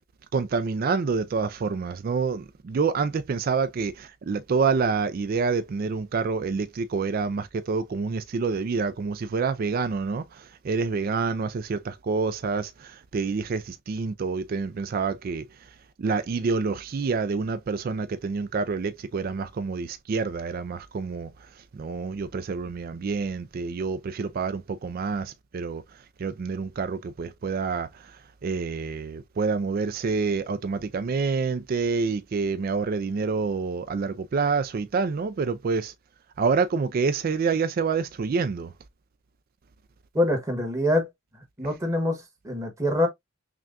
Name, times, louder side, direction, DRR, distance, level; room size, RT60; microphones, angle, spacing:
voice 1, 0.3-15.5 16.0-21.3 21.7-25.8 26.2-35.9 36.4-38.7, right 4 dB, 45° right, 0.3 m, -27 dB
voice 2, 40.1-41.1 41.6-43.1, left 1 dB, 15° right, 1.2 m, -25 dB
6.0 x 2.2 x 2.4 m
head